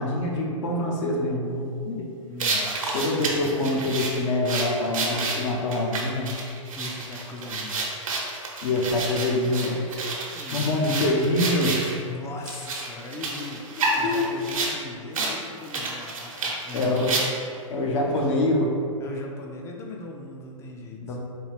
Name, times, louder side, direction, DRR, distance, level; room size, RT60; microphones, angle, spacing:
voice 1, 0.0-2.1 2.9-6.3 8.6-9.8 10.5-11.8 14.0-14.2 16.7-17.2 17.7-18.7 21.0-21.2, left 1 dB, 60° left, -1 dB, 0.8 m, -25 dB
voice 2, 2.3-3.8 6.8-7.9 10.3-11.1 12.0-17.2 19.0-21.2, left 2 dB, 15° left, 0 dB, 0.4 m, -39 dB
sound 1, 2.4-11.9 12.4-14.8 15.1-15.3 15.6-17.6, right 3 dB, 80° right, 0.9 m, -29 dB
4.3 x 2.4 x 3.3 m, 2.3 s
hypercardioid pair, 115°, 17 cm